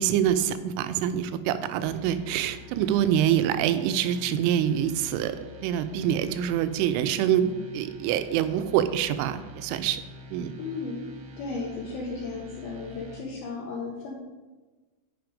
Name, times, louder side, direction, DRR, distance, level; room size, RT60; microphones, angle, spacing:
voice 1, 0.0-10.0 10.3-10.5, right 10 dB, 90° right, 11 dB, 3.1 m, -25 dB
sound 1, 1.8-13.2, left 3 dB, 70° right, 2.6 m, -47 dB
voice 2, 10.6-11.0 11.4-14.2, left 3 dB, 80° left, -1 dB, 2.2 m, -34 dB
9.4 x 5.3 x 5.0 m, 1.3 s
omnidirectional pair, 5.4 m